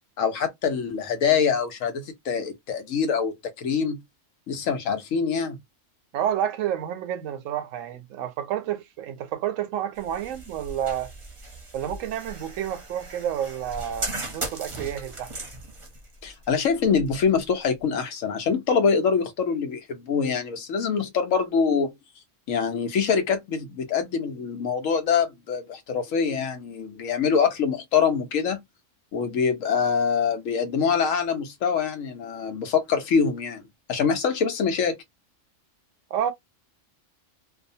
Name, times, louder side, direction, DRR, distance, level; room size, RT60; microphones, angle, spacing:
voice 1, 0.2-4.0 4.5-5.6 16.2-21.9 22.5-28.6 29.1-33.6 33.9-35.0, left 6 dB, 90° left, 1.1 m, -24 dB
voice 2, 6.1-11.1 11.7-15.3 36.1-36.3, right 10 dB, 85° right, 1.0 m, -29 dB
sound 1, 9.9-17.8, right 2 dB, 30° right, 0.6 m, -38 dB
2.7 x 2.2 x 2.6 m
omnidirectional pair, 1.3 m